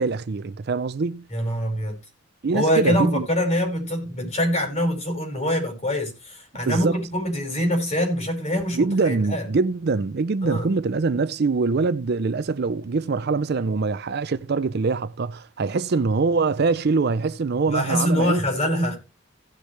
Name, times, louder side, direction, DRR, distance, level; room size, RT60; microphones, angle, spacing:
voice 1, 0.0-1.3 2.4-3.3 6.7-7.0 8.7-18.4, right 4 dB, 50° right, 0.5 m, -23 dB
voice 2, 1.3-2.0 2.5-9.4 10.4-10.7 17.7-19.0, equal, 35° left, 5.0 m, -24 dB
17.0 x 6.6 x 3.2 m
head